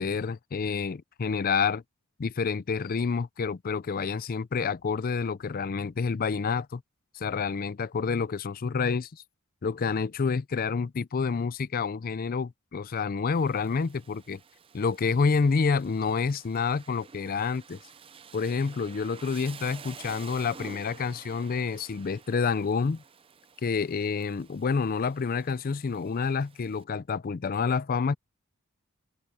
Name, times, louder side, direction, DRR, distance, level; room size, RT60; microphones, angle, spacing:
voice 1, 0.0-1.8 2.2-6.8 7.1-9.2 9.6-14.4 14.7-17.8 18.3-23.0 23.6-28.1, left 5 dB, 40° left, 0.4 m, -28 dB
Rain, 13.3-26.8, right 5 dB, 25° right, 0.5 m, -50 dB
open air
head